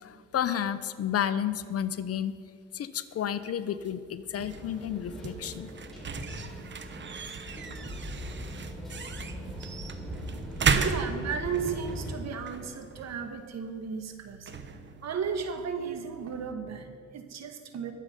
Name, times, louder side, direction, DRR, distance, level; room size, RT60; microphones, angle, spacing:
voice 1, 0.0-2.3 2.7-5.7, left 9 dB, 50° left, 13 dB, 0.7 m, -31 dB
sound 1, 3.8-16.5, right 5 dB, 40° right, 0.9 m, -36 dB
sound 2, 4.4-12.2, equal, ahead, 3.9 m, -40 dB
voice 2, 10.6-17.9, right 6 dB, 60° right, 7 dB, 1.4 m, -35 dB
21.0 x 7.5 x 5.2 m, 2.2 s
cardioid pair, 90°, 30 cm